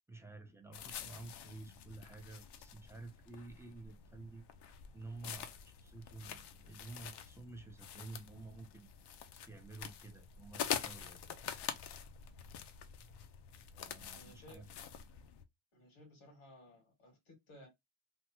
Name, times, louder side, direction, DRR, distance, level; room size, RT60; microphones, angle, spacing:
voice 1, 0.1-4.5 4.9-8.9 9.5-11.4 13.7-14.7, right 3 dB, 5° right, 0.4 m, -51 dB
sound 1, 0.7-15.4, left 8 dB, 60° left, 0.5 m, -46 dB
voice 2, 14.1-14.6 15.7-17.7, left 1 dB, 90° left, 2.0 m, -58 dB
3.4 x 2.1 x 2.8 m
cardioid pair, 145°, 48 cm